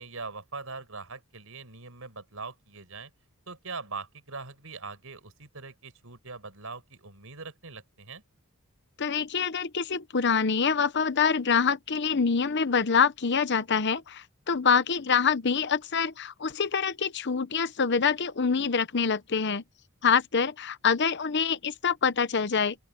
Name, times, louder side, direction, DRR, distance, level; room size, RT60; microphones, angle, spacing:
voice 1, 0.0-3.1 3.5-8.2, right 4 dB, 70° right, 5.1 m, -41 dB
voice 2, 9.0-19.6 20.0-22.8, left 6 dB, 50° left, 0.8 m, -25 dB
open air
head